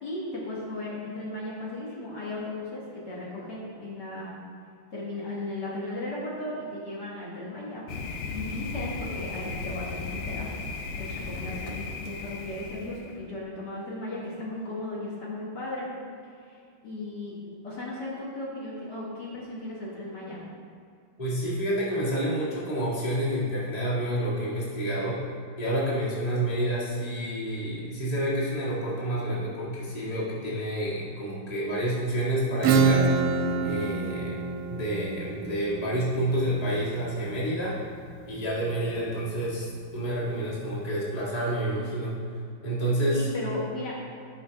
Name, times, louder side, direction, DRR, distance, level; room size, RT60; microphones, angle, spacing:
voice 1, 0.0-4.3 4.9-7.8 8.3-10.5 11.0-15.9 16.4-20.4 43.1-43.9, left 2 dB, 60° left, -6 dB, 2.0 m, -36 dB
Thunder, 7.9-13.2, left 4 dB, 75° left, 1.4 m, -36 dB
voice 2, 21.2-25.2 25.6-33.1 33.6-34.4 34.7-37.8 38.3-42.2 42.6-43.3, right 1 dB, 20° left, -8 dB, 1.8 m, -29 dB
Acoustic guitar / Strum, 32.6-38.0, right 5 dB, 90° right, 1.4 m, -27 dB
12.0 x 5.2 x 3.4 m, 2.4 s
omnidirectional pair, 2.2 m